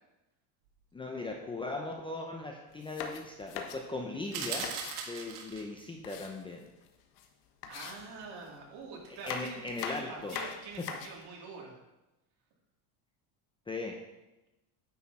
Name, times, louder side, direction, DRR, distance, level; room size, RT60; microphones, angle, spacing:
voice 1, 0.9-4.7 5.1-6.6 9.1-10.4 13.7-13.9, left 3 dB, 10° left, 2 dB, 0.7 m, -38 dB
sound 1, 2.7-5.0 5.6-6.9 7.2-7.3 7.6-8.6 9.1-11.3, left 7 dB, 85° left, 1.4 m, -42 dB
sound 2, 4.3-5.8, right 6 dB, 80° right, 1.8 m, -38 dB
voice 2, 7.7-11.7, right 4 dB, 55° right, -2 dB, 3.1 m, -45 dB
9.8 x 8.2 x 4.2 m, 0.98 s
cardioid pair, 150°, 47 cm